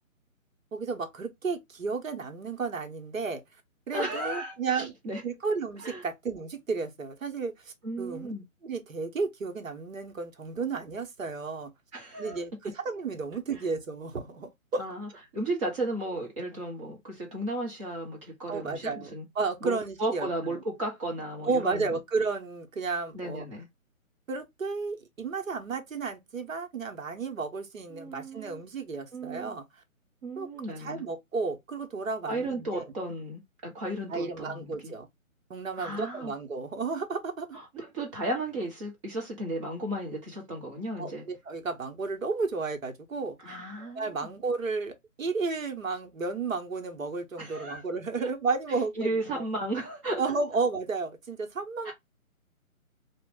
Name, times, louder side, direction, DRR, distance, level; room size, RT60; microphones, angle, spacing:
voice 1, 0.7-3.4 3.9-4.9 5.2-8.3 8.6-11.7 12.2-14.9 18.5-20.6 21.4-23.4 24.3-29.6 30.4-30.5 30.8-32.8 34.1-35.1 35.5-37.6 41.0-49.5 50.2-51.9, right 4 dB, 70° right, 1.1 m, -33 dB
voice 2, 3.9-5.2 5.8-6.0 7.8-8.4 11.9-12.4 14.8-19.2 19.6-21.9 23.1-23.7 27.9-28.6 29.1-29.5 30.2-31.0 32.3-34.9 35.8-36.3 37.5-41.2 43.4-44.3 47.4-47.8 49.0-50.2 51.8-51.9, right 1 dB, 20° right, 1.2 m, -34 dB
3.1 x 2.4 x 3.6 m
hypercardioid pair, 160°, 42 cm